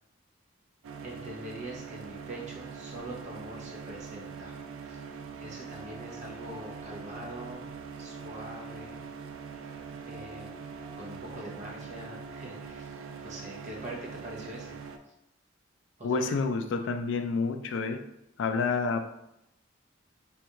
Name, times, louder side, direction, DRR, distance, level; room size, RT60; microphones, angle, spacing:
sound 1, 0.8-15.0, right 5 dB, 85° right, 0.3 m, -43 dB
voice 1, 1.0-4.5 4.9-5.0 5.4-7.7 8.0-9.0 10.0-10.6 11.0-12.9 13.2-14.7 16.0-16.3, right 1 dB, 35° right, -2 dB, 0.7 m, -43 dB
voice 2, 16.0-18.0 18.4-19.0, left 4 dB, 65° left, 7 dB, 0.3 m, -28 dB
3.4 x 2.4 x 2.8 m, 0.81 s
head